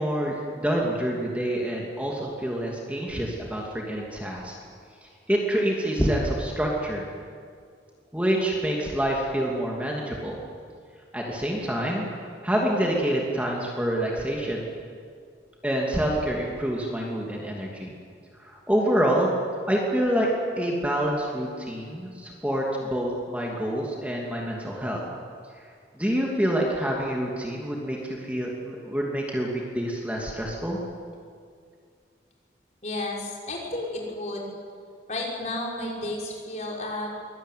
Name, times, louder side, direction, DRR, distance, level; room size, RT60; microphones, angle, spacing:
voice 1, 0.0-4.6 5.0-7.1 8.1-10.4 11.1-12.1 12.4-14.7 15.6-17.9 18.4-19.3 19.7-20.3 20.6-25.0 26.0-30.8, right 1 dB, 10° right, -2 dB, 2.7 m, -27 dB
voice 2, 32.8-34.5 35.1-37.1, left 1 dB, 40° left, -2 dB, 5.5 m, -32 dB
24.0 x 20.0 x 9.4 m, 2.2 s
head